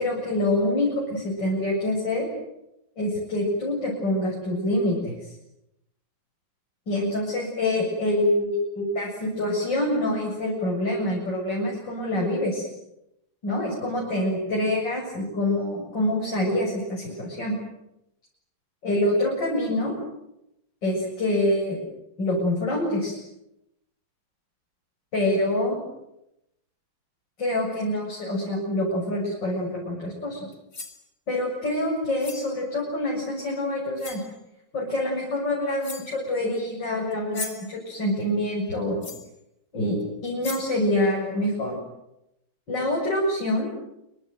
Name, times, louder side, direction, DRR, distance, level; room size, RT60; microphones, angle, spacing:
voice 1, 0.0-2.3 3.0-5.3 6.9-12.7 13.4-17.5 18.8-20.0 20.8-21.8 22.2-23.2 25.1-25.8 27.4-30.5 31.3-34.2 34.7-39.1 39.7-41.8 42.7-43.7, left 1 dB, 70° left, -3 dB, 8.0 m, -26 dB
sound 1, 30.5-31.0 32.2-32.6 33.5-33.6 34.0-34.3 35.4-35.5 35.8-36.2 37.1-37.7 39.0-39.3 40.0-40.1 40.4-40.8, left 3 dB, 55° left, 3.8 m, -38 dB
28.0 x 25.0 x 7.9 m, 0.87 s
omnidirectional pair, 2.0 m